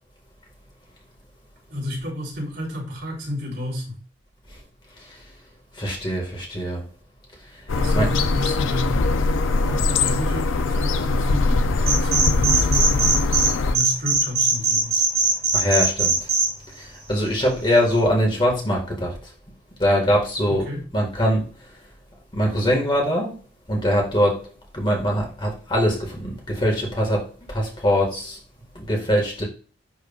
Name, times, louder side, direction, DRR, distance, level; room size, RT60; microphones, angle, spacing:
voice 1, 1.7-4.0 7.7-9.0 9.6-13.1 13.7-15.0 20.5-20.8, left 1 dB, 65° right, 3.5 m, -31 dB
voice 2, 5.8-6.8 7.9-8.1 15.5-16.1 17.1-19.2 19.8-21.5 22.3-23.4 23.7-24.5 24.7-28.4 28.8-29.4, equal, 25° left, 1.8 m, -22 dB
sound 1, 7.7-13.7, left 3 dB, 80° left, 0.5 m, -21 dB
sound 2, 11.8-13.5 13.7-16.5, right 4 dB, 30° right, 2.9 m, -20 dB
10.5 x 3.6 x 2.4 m
head